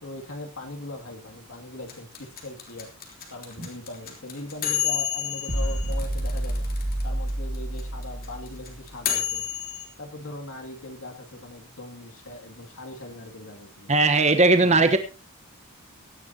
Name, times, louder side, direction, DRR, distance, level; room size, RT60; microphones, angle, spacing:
voice 1, 0.0-2.9 3.3-6.7 7.0-9.5 10.0-13.9, left 2 dB, 75° left, 2 dB, 2.6 m, -40 dB
sound 1, 1.9-7.0 7.3-7.4 7.5-9.9, left 10 dB, 40° left, 3.4 m, -29 dB
sound 2, 5.5-8.9, right 1 dB, 50° right, 2.6 m, -29 dB
voice 2, 13.9-15.0, right 3 dB, 30° right, 8 dB, 1.1 m, -18 dB
17.5 x 14.5 x 2.9 m, 0.31 s
head